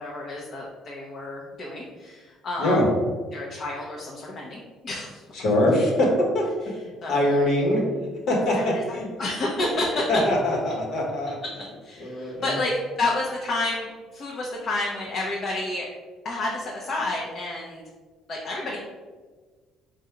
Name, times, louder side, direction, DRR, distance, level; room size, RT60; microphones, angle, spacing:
voice 1, 0.0-2.8 3.3-5.2 6.7-7.1 8.5-8.6 9.2-10.1 11.8-15.9 16.2-17.8 18.3-18.8, left 2 dB, 50° left, -3 dB, 0.8 m, -30 dB
voice 2, 5.3-6.5 7.1-7.9 8.3-9.1 10.1-11.4 12.0-12.5, left 1 dB, 70° left, -2 dB, 1.3 m, -23 dB
3.8 x 2.5 x 4.4 m, 1.4 s
supercardioid pair, 85°, 0 cm